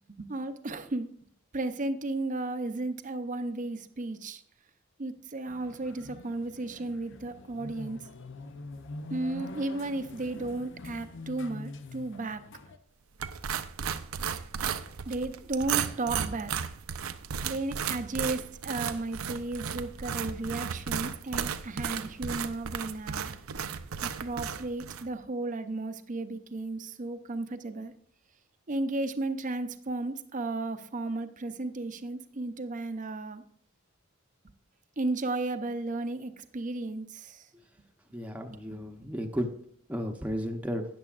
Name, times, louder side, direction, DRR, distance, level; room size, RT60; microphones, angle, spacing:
voice 1, 0.2-1.1 1.5-4.4 5.0-8.1 9.1-12.4 15.1-16.5 17.4-23.3 24.0-27.9 28.7-33.4 35.0-37.5 38.5-39.1, right 2 dB, 35° right, 10 dB, 0.6 m, -34 dB
sound 1, 5.5-12.8, left 2 dB, 60° left, 0.7 m, -44 dB
sound 2, 13.2-25.1, right 7 dB, 85° right, 0.6 m, -34 dB
voice 2, 38.1-39.5 39.9-40.9, equal, 5° right, 2 dB, 0.8 m, -33 dB
13.0 x 9.3 x 2.5 m, 0.63 s
head